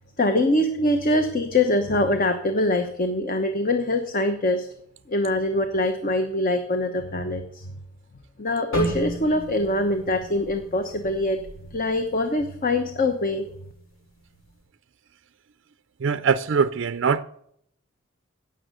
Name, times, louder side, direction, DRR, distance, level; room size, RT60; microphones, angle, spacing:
voice 1, 0.2-4.7 5.1-7.7 8.4-11.4 11.7-13.5, left 1 dB, 40° left, 1.0 m, -23 dB
sound 1, 8.7-12.8 13.1-13.4 14.0-14.4, right 1 dB, 70° left, 3.4 m, -35 dB
voice 2, 16.0-17.2, right 6 dB, 60° right, 0.4 m, -22 dB
17.0 x 6.6 x 7.8 m
head